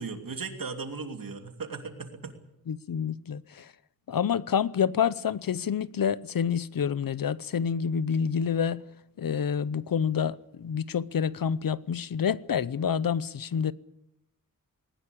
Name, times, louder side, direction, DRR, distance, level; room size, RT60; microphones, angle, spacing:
voice 1, 0.0-2.3, right 4 dB, 75° right, 3.0 m, -37 dB
voice 2, 2.7-3.7 4.1-8.8 9.2-13.7, left 7 dB, 80° left, 0.8 m, -28 dB
20.0 x 19.0 x 8.5 m
wide cardioid pair, 115°, 34 cm